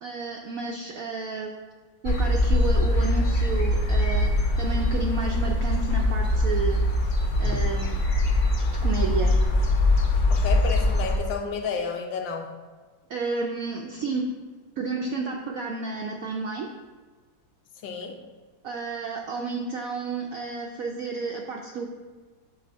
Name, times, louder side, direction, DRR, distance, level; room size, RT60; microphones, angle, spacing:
voice 1, 0.0-1.6 2.0-6.8 7.4-8.0 8.8-9.4 13.1-14.3 14.8-16.7 18.6-21.9, right 4 dB, 75° right, 1 dB, 0.8 m, -31 dB
sound 1, 2.0-11.2, left 1 dB, 55° left, 0.8 m, -22 dB
voice 2, 10.3-12.5 17.8-18.2, left 5 dB, 75° left, 4 dB, 1.4 m, -31 dB
6.9 x 3.9 x 5.3 m, 1.4 s
omnidirectional pair, 2.1 m